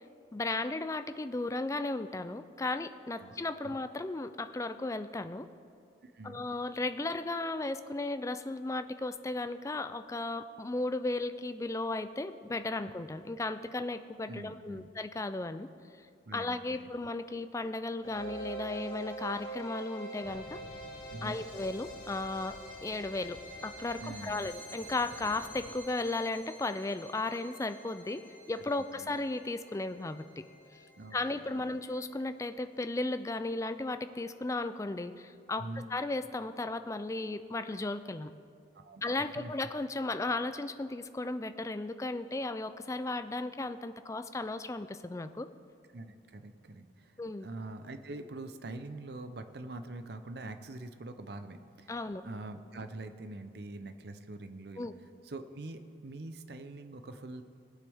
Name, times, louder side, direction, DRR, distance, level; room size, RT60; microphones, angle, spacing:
voice 1, 0.3-5.5 6.2-15.7 16.3-20.6 21.2-23.4 23.6-28.2 28.5-30.2 31.1-38.3 39.0-45.5 47.2-47.5 51.9-52.2 54.8-54.9, left 2 dB, 15° left, 11 dB, 0.3 m, -35 dB
voice 2, 6.0-6.5 12.8-12.9 14.3-14.9 16.3-16.9 21.1-21.4 24.0-24.5 29.0-29.1 31.0-31.7 35.6-35.9 38.8-39.5 45.9-54.9 55.2-57.4, right 2 dB, 55° right, 8 dB, 0.6 m, -44 dB
sound 1, 18.0-33.0, right 2 dB, 35° left, 3.6 m, -46 dB
sound 2, 20.2-25.8, left 2 dB, 60° left, 0.8 m, -54 dB
19.5 x 8.5 x 3.5 m, 2.3 s
head